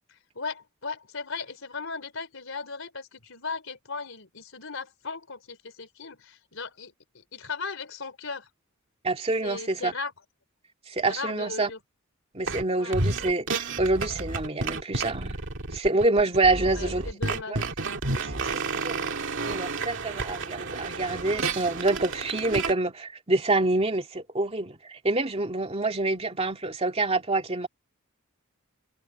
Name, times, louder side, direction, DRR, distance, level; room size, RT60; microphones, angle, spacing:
voice 1, 0.1-8.5 9.4-10.1 11.0-11.8 12.8-12.9 16.6-17.6, left 4 dB, 65° left, 4.5 m, -37 dB
voice 2, 9.0-9.9 10.9-11.7 12.3-15.4 15.7-17.1 17.5-17.6 18.2-19.1 19.5-27.7, right 2 dB, 30° right, 2.3 m, -27 dB
sound 1, 12.5-12.6 12.9-22.7, right 3 dB, 60° right, 2.3 m, -31 dB
head